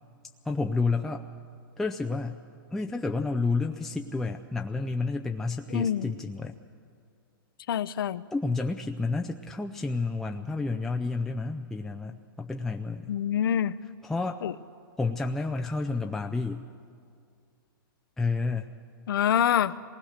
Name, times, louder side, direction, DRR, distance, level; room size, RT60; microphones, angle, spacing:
voice 1, 0.4-1.2 1.8-2.4 2.7-6.6 8.3-13.1 14.0-14.4 15.0-16.6 18.2-18.7, left 3 dB, 5° left, 3 dB, 0.5 m, -30 dB
voice 2, 5.7-6.1 7.7-8.2 13.1-13.7 14.4-14.5 19.1-19.7, left 9 dB, 75° left, 14 dB, 0.7 m, -25 dB
26.0 x 19.5 x 6.6 m, 2.3 s
hypercardioid pair, 145°, 12 cm